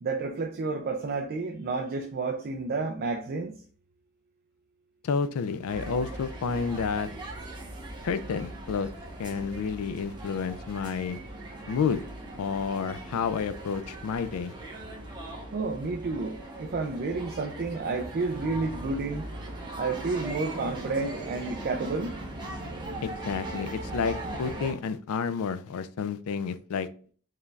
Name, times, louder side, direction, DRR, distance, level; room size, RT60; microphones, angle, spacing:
voice 1, 0.0-3.5 15.5-19.3 19.8-22.1, right 3 dB, 45° right, 0.4 m, -30 dB
voice 2, 5.0-7.1 8.0-8.9 9.2-11.2 11.7-12.0 12.4-14.5 23.0-26.9, left 5 dB, 65° left, 0.3 m, -30 dB
sound 1, 5.7-24.7, right 1 dB, 20° right, 0.8 m, -39 dB
4.7 x 3.2 x 2.3 m
head